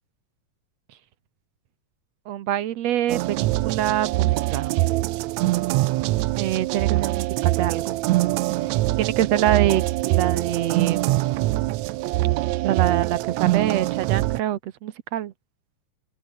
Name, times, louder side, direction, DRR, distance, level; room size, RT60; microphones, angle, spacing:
voice 1, 2.3-4.8 6.4-8.0 9.0-11.3 12.6-15.3, right 12 dB, 65° right, 1.9 m, -25 dB
sound 1, 3.1-14.4, right 17 dB, 85° right, 1.6 m, -23 dB
open air
omnidirectional pair, 3.9 m